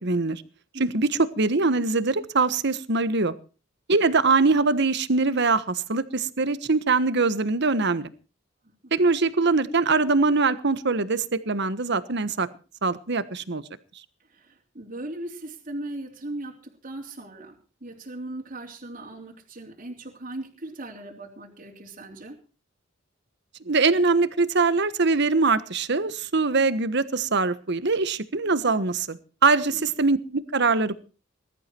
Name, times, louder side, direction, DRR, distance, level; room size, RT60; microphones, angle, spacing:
voice 1, 0.0-0.4 0.8-3.3 3.9-8.1 8.9-12.5 12.8-13.6 23.6-31.0, right 3 dB, 60° right, 14 dB, 1.3 m, -23 dB
voice 2, 14.3-22.4 29.7-29.9, right 1 dB, 45° right, -1 dB, 3.3 m, -38 dB
20.5 x 12.5 x 4.5 m, 0.36 s
head